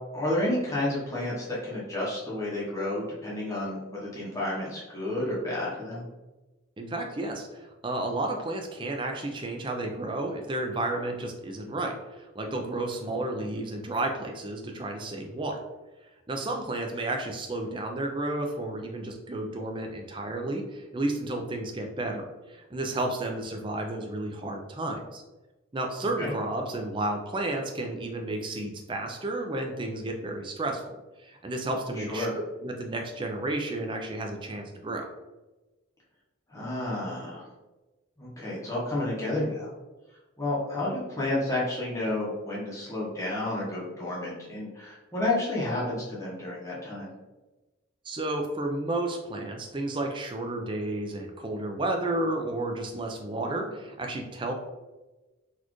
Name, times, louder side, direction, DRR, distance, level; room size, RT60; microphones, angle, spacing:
voice 1, 0.1-6.0 26.2-26.3 32.0-32.3 36.5-37.5 38.2-39.7 40.4-47.1, left 1 dB, 15° left, -7 dB, 0.8 m, -31 dB
voice 2, 6.8-15.6 16.3-25.2 25.7-30.8 31.2-32.3 32.6-35.1 48.0-54.5, right 2 dB, 25° right, 3 dB, 0.4 m, -32 dB
4.1 x 2.5 x 3.0 m, 1.1 s
head